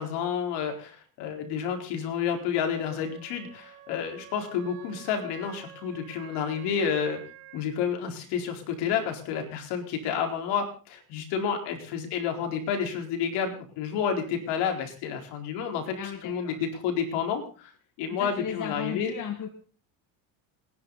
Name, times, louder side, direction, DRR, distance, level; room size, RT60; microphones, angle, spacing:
voice 1, 0.0-7.2 7.5-16.0 16.2-17.7 18.0-19.1, left 7 dB, 70° left, 4 dB, 4.4 m, -30 dB
Wind instrument woodwind instrument, 2.5-7.7, right 11 dB, 85° right, 5.1 m, -49 dB
voice 2, 16.0-16.6 18.1-19.5, left 8 dB, 45° left, 6 dB, 2.0 m, -35 dB
29.0 x 11.0 x 4.1 m, 0.38 s
supercardioid pair, 95°, 42 cm